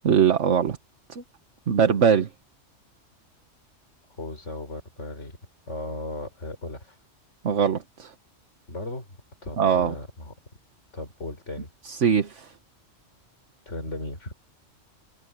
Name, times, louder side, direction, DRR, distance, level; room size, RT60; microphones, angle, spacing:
voice 1, 0.0-0.8 1.1-1.2 1.7-2.3 7.4-8.1 9.6-9.9 11.8-12.5, right 7 dB, 70° right, 1.5 m, -21 dB
voice 2, 4.2-5.4 5.7-7.0 8.7-9.1 9.4-10.3 10.9-11.7 13.7-14.3, left 2 dB, 70° left, 5.2 m, -36 dB
omnidirectional pair, 1.3 m